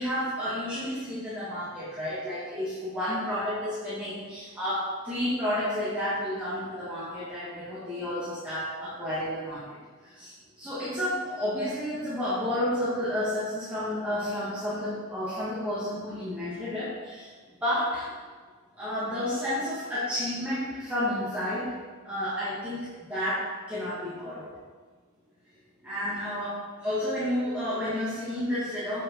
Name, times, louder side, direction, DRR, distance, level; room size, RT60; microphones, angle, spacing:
voice 1, 0.0-17.3 17.6-18.1 18.7-21.7 22.0-24.5 25.8-29.0, left 1 dB, 5° right, -11 dB, 1.2 m, -31 dB
7.1 x 5.3 x 3.7 m, 1.5 s
head